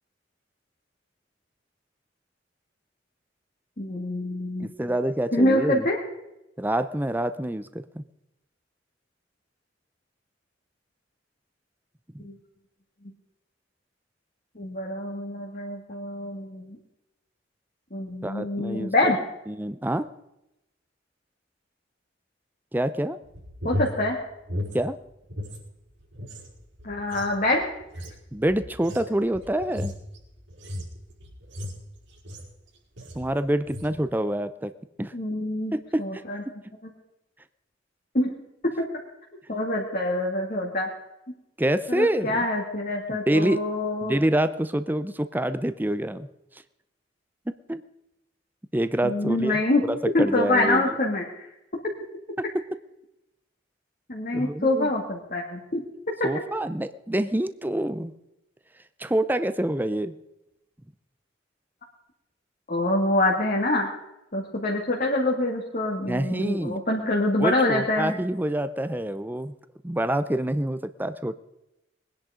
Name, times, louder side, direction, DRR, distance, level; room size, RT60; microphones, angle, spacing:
voice 1, 3.8-4.7 5.3-6.0 12.2-12.3 14.6-16.8 17.9-19.2 23.6-24.2 26.8-27.6 35.1-35.7 36.0-36.4 38.1-38.3 38.6-38.7 39.5-40.9 41.9-44.1 49.0-49.8 50.1-51.4 51.7-51.8 54.1-55.8 62.7-63.9 64.3-68.1, left 1 dB, 50° left, -2 dB, 2.3 m, -25 dB
voice 2, 4.6-5.9 6.6-8.0 12.1-12.2 18.2-19.1 19.5-20.1 22.7-23.2 24.7-25.0 28.3-29.9 33.1-34.7 35.0-35.1 35.7-36.2 41.6-42.5 43.1-43.6 44.0-46.3 47.7-47.8 48.7-50.9 52.4-52.6 54.3-54.9 56.2-58.1 59.0-60.1 66.0-66.8 67.4-69.5 69.8-71.4, right 1 dB, 10° right, 12 dB, 0.6 m, -26 dB
sound 1, 23.3-25.6 25.9-32.6 33.0-33.3 33.6-34.0, left 1 dB, 90° right, 5.0 m, -36 dB
21.5 x 10.5 x 5.0 m, 0.89 s
head